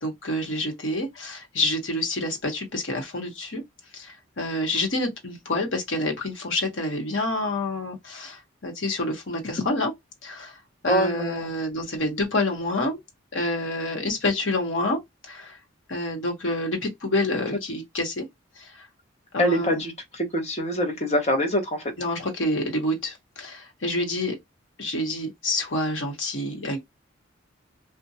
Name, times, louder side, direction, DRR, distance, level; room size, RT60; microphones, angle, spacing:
voice 1, 0.0-3.6 3.9-9.9 10.2-10.5 10.8-13.0 13.3-15.5 15.9-18.3 18.6-18.7 19.3-19.8 22.0-24.4 24.8-26.8, left 1 dB, 70° left, 1.1 m, -28 dB
voice 2, 10.9-11.5 19.4-21.9, equal, 35° left, 0.9 m, -24 dB
2.5 x 2.1 x 2.7 m
head